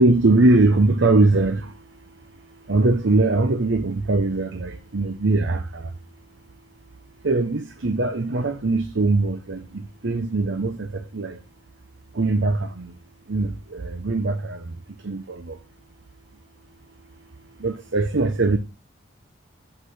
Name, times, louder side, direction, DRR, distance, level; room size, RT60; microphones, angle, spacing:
voice 1, 0.0-1.8 2.6-5.9 7.2-11.4 12.1-12.9 13.3-14.8 15.0-15.6 17.6-18.6, right 2 dB, 75° right, 0.9 m, -21 dB
7.7 x 4.9 x 6.4 m
head